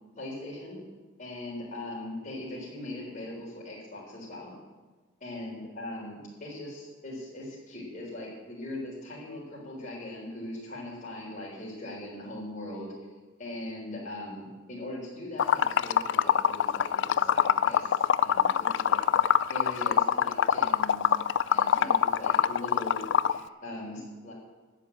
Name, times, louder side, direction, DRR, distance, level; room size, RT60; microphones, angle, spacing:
voice 1, 0.2-0.8 1.2-4.5 5.2-12.9 13.4-21.1 21.5-23.0 23.3-24.3, left 1 dB, 40° left, -6 dB, 3.9 m, -40 dB
Liquid, 15.4-23.4, left 8 dB, 65° left, 0.4 m, -24 dB
11.5 x 7.6 x 8.5 m, 1.3 s
head